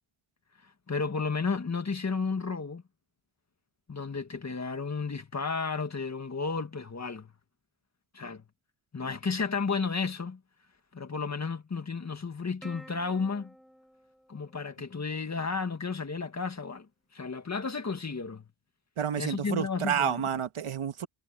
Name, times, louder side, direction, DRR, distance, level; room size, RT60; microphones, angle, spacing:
voice 1, 0.9-2.8 3.9-7.3 8.1-8.4 8.9-10.4 10.9-13.5 14.3-18.5 19.2-20.2, left 4 dB, 35° left, 1.9 m, -32 dB
Plucked string instrument, 12.6-15.4, equal, ahead, 5.0 m, -53 dB
voice 2, 19.0-21.1, right 8 dB, 80° right, 1.5 m, -30 dB
wide cardioid pair, 150°, 50 cm